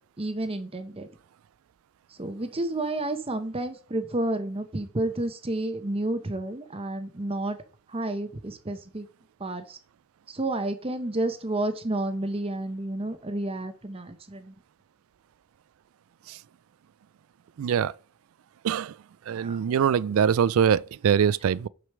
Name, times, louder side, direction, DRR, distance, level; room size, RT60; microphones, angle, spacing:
voice 1, 0.2-1.1 2.2-7.6 7.9-9.1 9.4-9.8 10.3-14.5 19.4-19.6, right 1 dB, 25° right, 0.8 m, -30 dB
voice 2, 17.6-17.9 18.6-19.0 19.3-21.7, right 8 dB, 80° right, 0.3 m, -23 dB
6.5 x 5.0 x 6.0 m
head